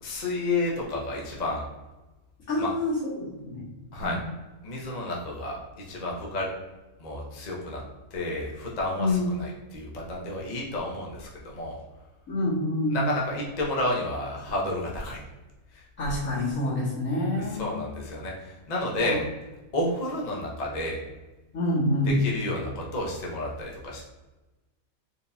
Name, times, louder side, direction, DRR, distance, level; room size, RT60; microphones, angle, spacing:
voice 1, 0.0-1.6 2.6-2.7 3.9-4.2 4.6-5.6 5.9-6.5 7.0-7.8 8.1-11.8 12.9-15.2 15.7-15.8 17.4-19.2 19.7-21.0 22.1-24.0, left 1 dB, 35° left, -3 dB, 0.7 m, -31 dB
voice 2, 2.5-3.6 4.0-4.1 8.9-9.3 12.3-13.1 16.0-17.7 18.9-19.2 21.5-22.2, left 1 dB, 65° left, -7 dB, 2.1 m, -27 dB
4.5 x 3.6 x 2.6 m, 1.1 s
omnidirectional pair, 1.6 m